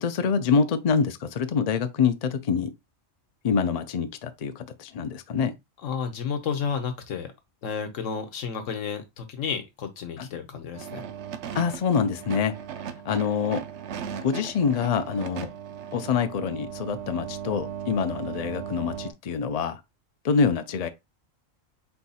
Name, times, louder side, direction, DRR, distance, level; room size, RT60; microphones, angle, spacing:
voice 1, 0.0-2.7 3.4-5.5 10.2-10.3 11.5-12.5 13.0-13.6 14.2-15.5 15.9-19.8 20.2-20.9, left 6 dB, 55° left, 0.4 m, -25 dB
voice 2, 5.8-7.3 7.6-11.1, left 6 dB, 75° left, 1.2 m, -31 dB
sound 1, 10.7-19.1, right 8 dB, 65° right, 0.8 m, -37 dB
4.5 x 2.3 x 4.1 m
omnidirectional pair, 1.4 m